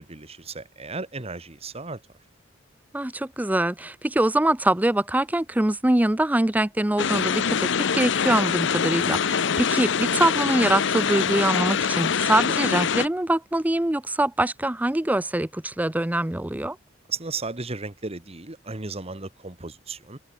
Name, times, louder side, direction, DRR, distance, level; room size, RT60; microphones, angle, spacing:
voice 1, 0.0-2.0 17.1-20.2, right 4 dB, 30° right, 1.7 m, -35 dB
voice 2, 2.9-16.8, right 1 dB, 10° right, 0.5 m, -24 dB
sound 1, 7.0-13.1, left 6 dB, 65° left, 0.7 m, -24 dB
open air
head